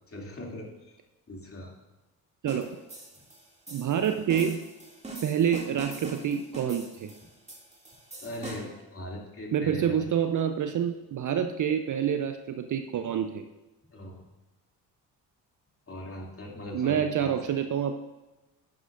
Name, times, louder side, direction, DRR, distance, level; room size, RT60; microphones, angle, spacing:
voice 1, 0.1-1.0 1.3-1.7 8.2-10.0 13.9-14.2 15.9-17.5, left 1 dB, 30° left, -1 dB, 2.7 m, -40 dB
voice 2, 2.4-2.8 3.7-4.6 5.2-7.1 9.5-13.4 16.7-18.0, right 8 dB, 40° right, 8 dB, 0.7 m, -27 dB
sound 1, 2.5-8.8, right 3 dB, 15° right, 2.5 m, -43 dB
10.5 x 10.5 x 2.6 m, 1.1 s
hypercardioid pair, 50°, 48 cm